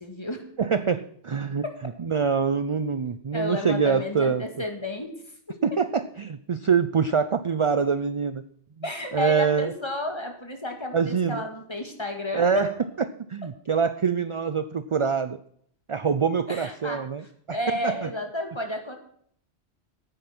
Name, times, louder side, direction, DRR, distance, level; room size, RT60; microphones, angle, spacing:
voice 1, 0.0-0.5 1.6-1.8 3.3-5.1 5.5-5.6 8.8-12.7 16.5-17.0 17.5-19.0, left 1 dB, 25° left, 4 dB, 2.0 m, -32 dB
voice 2, 0.6-4.4 5.6-8.4 9.1-9.7 10.9-11.4 12.3-12.7 13.3-15.4 15.9-17.6 17.8-18.1, right 6 dB, 45° right, 12 dB, 0.4 m, -25 dB
9.4 x 9.1 x 6.0 m, 0.64 s
omnidirectional pair, 1.1 m